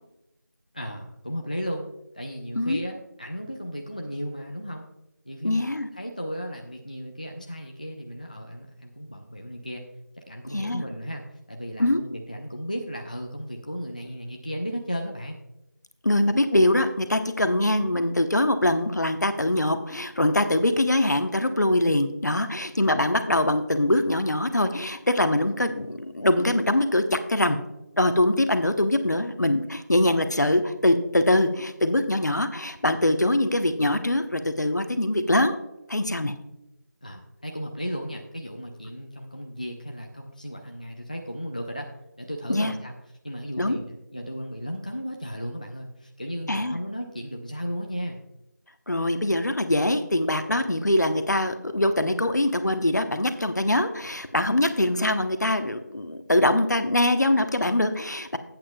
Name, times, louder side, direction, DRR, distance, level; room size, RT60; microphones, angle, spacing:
voice 1, 0.7-1.8 2.1-4.9 5.3-9.8 10.3-15.4 37.0-41.9 42.2-42.9 43.2-48.2, equal, 25° left, 2 dB, 0.5 m, -35 dB
voice 2, 5.4-5.9 10.5-10.8 11.8-12.0 16.0-27.6 28.0-35.6 35.9-36.3 42.5-42.7 43.6-43.8 46.5-46.8 48.9-58.4, left 1 dB, 65° left, 8 dB, 0.9 m, -23 dB
13.0 x 8.6 x 2.3 m, 0.90 s
figure-of-eight pair, 175°, 10 cm